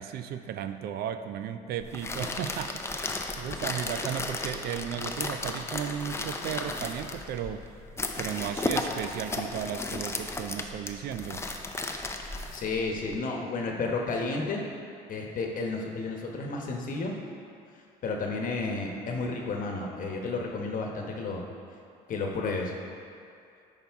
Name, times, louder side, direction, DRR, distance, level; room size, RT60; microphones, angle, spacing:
voice 1, 0.0-3.1 3.4-7.7 8.2-11.4, right 9 dB, 70° right, 9 dB, 0.4 m, -35 dB
sound 1, 1.8-13.2, left 2 dB, 15° left, 0.5 m, -34 dB
voice 2, 12.5-14.6 15.1-17.1 18.0-21.4 22.1-22.7, left 3 dB, 50° left, 1 dB, 1.1 m, -32 dB
8.8 x 5.5 x 3.5 m, 2.4 s
cardioid pair, 110°, 17 cm